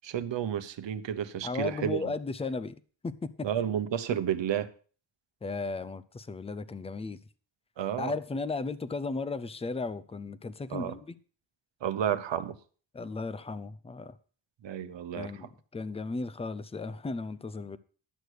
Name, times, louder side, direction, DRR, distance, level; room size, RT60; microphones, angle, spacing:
voice 1, 0.0-2.1 3.4-4.7 7.8-8.1 10.7-11.0 11.8-12.6 14.6-15.3, right 9 dB, 70° right, 0.9 m, -31 dB
voice 2, 1.4-2.8 3.0-3.5 5.4-7.2 8.0-11.2 12.9-14.1 15.1-17.8, left 3 dB, 15° left, 0.4 m, -35 dB
11.5 x 6.6 x 6.2 m
wide cardioid pair, 170°, 45 cm